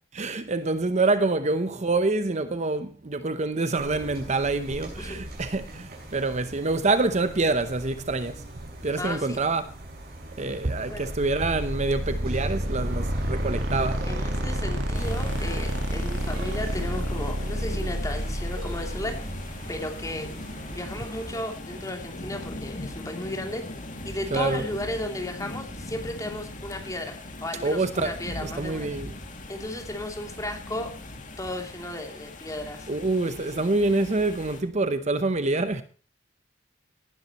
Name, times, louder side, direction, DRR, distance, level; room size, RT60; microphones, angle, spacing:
voice 1, 0.1-8.5 8.8-9.6 10.4-14.2 24.3-24.6 27.6-28.1 28.4-29.1 32.9-35.8, right 3 dB, 40° right, 0.8 m, -26 dB
sound 1, 3.8-21.4, right 1 dB, 55° right, 6.3 m, -38 dB
voice 2, 9.0-9.4 10.9-11.1 14.1-19.3 19.7-20.3 20.7-23.7 24.0-28.9 29.5-30.9 31.4-32.9 33.4-33.6, left 1 dB, 20° left, 2.9 m, -34 dB
sound 2, 10.9-19.7, equal, 80° right, 2.1 m, -30 dB
sound 3, 14.9-34.6, left 2 dB, 45° left, 2.4 m, -40 dB
17.5 x 11.0 x 3.0 m
head